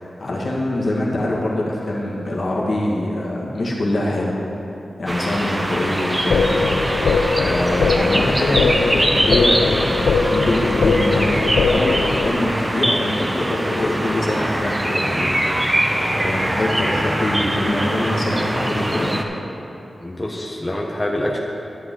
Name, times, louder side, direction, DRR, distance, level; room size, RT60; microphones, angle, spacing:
voice 1, 0.0-4.4 5.0-6.7 7.4-15.4 16.1-19.1, left 1 dB, 60° left, -4 dB, 1.9 m, -23 dB
sound 1, 5.1-19.2, right 1 dB, 20° right, 0.8 m, -22 dB
sound 2, 6.3-12.3, left 4 dB, 90° left, 0.4 m, -20 dB
voice 2, 20.0-21.4, left 1 dB, 20° left, -2 dB, 1.0 m, -26 dB
12.0 x 7.9 x 3.9 m, 2.9 s
cardioid pair, 60°, 0 cm